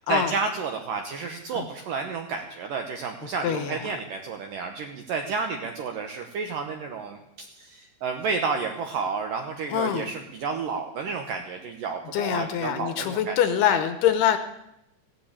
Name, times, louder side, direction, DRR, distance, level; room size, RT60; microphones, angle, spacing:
voice 1, 0.1-13.4, right 5 dB, 75° right, 4 dB, 2.0 m, -31 dB
voice 2, 3.4-3.9 9.7-10.1 12.1-14.4, left 9 dB, 75° left, 9 dB, 2.6 m, -24 dB
15.5 x 10.0 x 8.6 m, 0.84 s
omnidirectional pair, 5.2 m